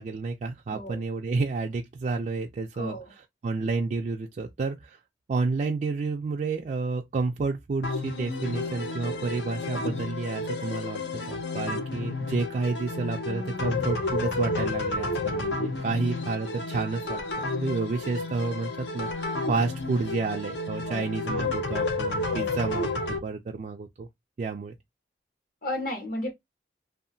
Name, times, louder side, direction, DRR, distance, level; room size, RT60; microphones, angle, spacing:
voice 1, 0.0-5.0 5.3-17.2 17.6-24.1 24.4-24.7, right 4 dB, 45° right, 0.3 m, -30 dB
voice 2, 0.7-1.0 2.7-3.1 20.9-21.1 22.3-22.6 25.6-26.3, left 1 dB, 55° left, 1.0 m, -34 dB
sound 1, 7.8-23.2, left 3 dB, 75° left, 0.6 m, -31 dB
Bass guitar, 13.3-19.5, left 3 dB, 35° left, 0.7 m, -46 dB
2.8 x 2.4 x 2.6 m
head